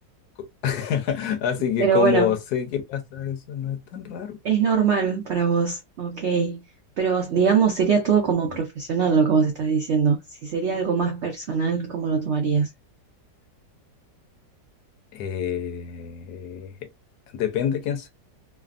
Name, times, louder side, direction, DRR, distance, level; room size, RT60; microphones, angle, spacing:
voice 1, 0.6-4.4 8.4-8.6 15.1-16.7 17.3-18.1, left 9 dB, 70° left, 1.1 m, -27 dB
voice 2, 1.8-2.3 4.4-6.6 7.0-10.2 10.4-12.7, right 6 dB, 80° right, 0.6 m, -22 dB
3.3 x 2.0 x 2.4 m
omnidirectional pair, 1.9 m